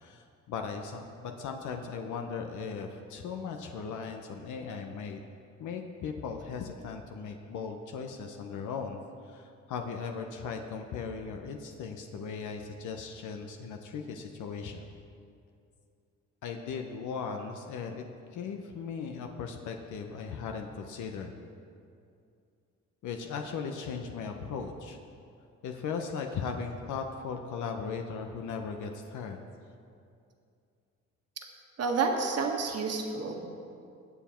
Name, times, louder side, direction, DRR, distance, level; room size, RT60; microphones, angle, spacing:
voice 1, 0.0-5.2 5.6-14.9 16.4-18.0 18.3-21.4 23.0-25.0 25.6-29.4, left 5 dB, 80° left, 4 dB, 0.9 m, -38 dB
voice 2, 31.8-33.6, right 4 dB, 55° right, 2 dB, 1.7 m, -30 dB
19.0 x 7.3 x 4.4 m, 2.5 s
cardioid pair, 90°, 30 cm